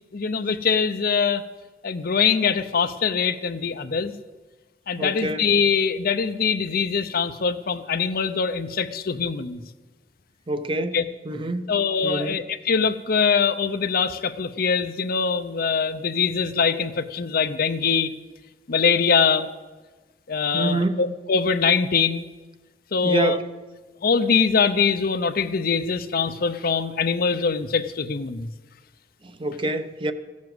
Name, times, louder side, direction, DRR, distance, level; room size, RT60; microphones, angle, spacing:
voice 1, 0.1-1.4 1.8-4.1 4.9-9.6 10.9-11.0 11.7-18.1 18.7-19.5 20.3-22.3 22.9-23.4 24.0-28.5, left 5 dB, 55° left, 11 dB, 0.6 m, -23 dB
voice 2, 5.0-5.4 10.5-11.0 11.3-11.7 12.0-12.4 20.5-21.0 23.0-23.4 29.2-30.1, right 2 dB, 30° right, 10 dB, 0.7 m, -26 dB
15.5 x 7.3 x 7.8 m, 1.3 s
head